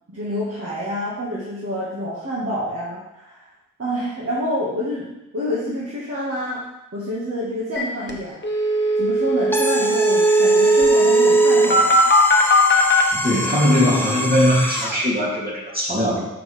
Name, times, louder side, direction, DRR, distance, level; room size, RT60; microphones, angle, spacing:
voice 1, 0.1-3.5 3.8-5.1 5.3-6.6 6.9-8.4 9.0-12.0, equal, 50° right, -7 dB, 1.5 m, -27 dB
sound 1, 7.8-7.9 8.1-8.2 8.4-13.0, right 1 dB, 35° left, 1.0 m, -16 dB
sound 2, 9.5-15.1, left 1 dB, 5° left, 0.6 m, -27 dB
voice 2, 13.2-16.2, left 1 dB, 30° right, -5 dB, 2.5 m, -20 dB
6.2 x 6.0 x 3.3 m, 0.90 s
wide cardioid pair, 55°, 32 cm